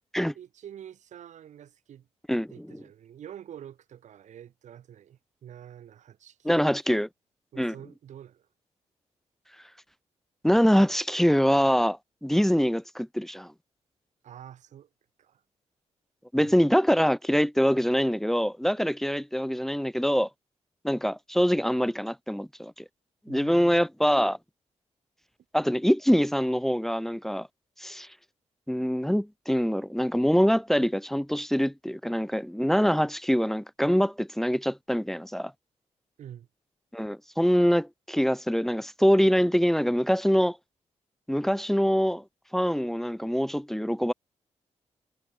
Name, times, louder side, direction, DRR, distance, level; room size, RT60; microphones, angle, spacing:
voice 1, 0.3-2.1 2.5-7.0 7.5-8.5 14.2-14.9 15.2-15.4 16.3-16.6 23.3-23.8 36.2-36.5, right 10 dB, 90° right, 3.4 m, -47 dB
voice 2, 6.4-7.1 7.6-7.7 10.4-13.5 16.3-20.3 20.8-22.7 23.3-24.4 25.5-27.5 27.8-28.1 28.7-35.5 36.9-40.6 41.3-42.2 42.5-44.1, equal, 5° left, 1.3 m, -24 dB
cardioid pair, 95°, 12 cm